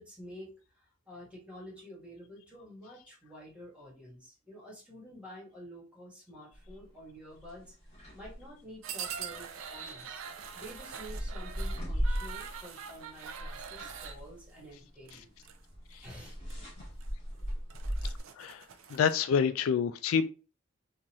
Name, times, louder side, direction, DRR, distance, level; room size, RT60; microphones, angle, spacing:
voice 1, 0.0-10.2 10.5-15.3 16.0-16.4, equal, 5° right, -4 dB, 1.6 m, -49 dB
sound 1, 6.5-6.8 7.3-8.5 9.4-12.7 13.0-18.2, equal, 35° left, 1.9 m, -37 dB
sound 2, 8.8-14.2 15.1-15.6 15.9-16.1 16.5-16.6 17.0-17.1 17.5-19.1, right 7 dB, 80° right, 0.5 m, -43 dB
voice 2, 18.9-20.3, left 7 dB, 80° left, 12 dB, 0.3 m, -27 dB
3.8 x 2.6 x 3.0 m, 0.35 s
head